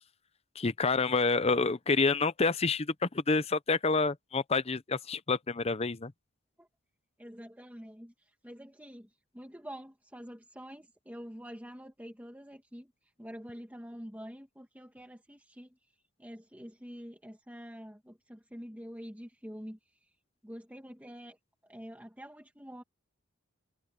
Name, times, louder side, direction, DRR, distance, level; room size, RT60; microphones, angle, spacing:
voice 1, 0.6-6.1, left 4 dB, 30° left, 0.7 m, -28 dB
voice 2, 7.2-9.1 9.3-12.9 13.2-15.8 16.2-20.1 20.4-21.4 21.7-22.8, equal, 10° right, 2.2 m, -46 dB
head